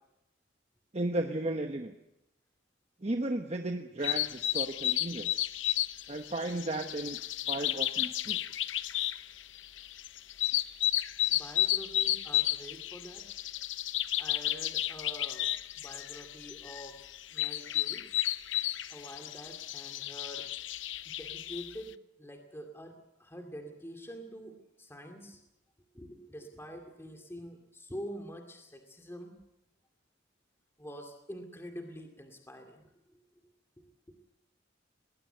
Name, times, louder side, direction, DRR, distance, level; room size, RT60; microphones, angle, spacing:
voice 1, 0.9-2.0 3.0-5.5 6.1-7.2 7.5-8.4, right 2 dB, 35° right, 5 dB, 1.1 m, -34 dB
sound 1, 4.0-21.7, left 13 dB, 80° left, 0.7 m, -33 dB
voice 2, 11.3-13.2 14.2-15.5 15.8-17.0 17.3-18.1 18.9-20.4 21.1-21.9 22.2-22.9 23.2-25.4 25.9-29.3 30.8-33.2 33.8-34.2, equal, 15° left, 4 dB, 2.2 m, -46 dB
20.0 x 20.0 x 7.9 m, 0.89 s
head